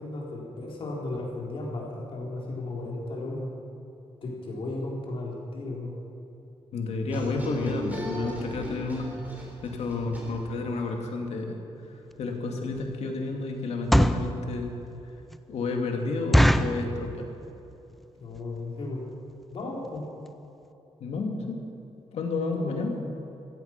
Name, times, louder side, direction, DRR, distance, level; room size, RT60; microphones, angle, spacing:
voice 1, 0.0-3.5 4.2-5.9 18.2-19.0 19.5-20.0 22.5-22.8, left 2 dB, 60° left, -2 dB, 4.0 m, -35 dB
voice 2, 6.7-9.1 9.6-11.6 12.2-14.7 15.5-17.3 21.0-21.6 22.1-23.0, left 3 dB, 85° left, 2 dB, 2.4 m, -31 dB
sound 1, 7.1-10.8, right 1 dB, 15° right, 3.8 m, -37 dB
sound 2, 12.1-12.2 12.7-13.0 13.7-14.3 14.9-15.0 15.3-15.4 15.7-15.8 16.3-16.8 17.4-17.7 18.0-18.1 18.3-18.6 19.1-19.2 19.4-19.6 20.0-20.1 20.3-20.4, equal, ahead, 0.5 m, -21 dB
15.5 x 15.0 x 5.9 m, 3.0 s
wide cardioid pair, 160°, 11 cm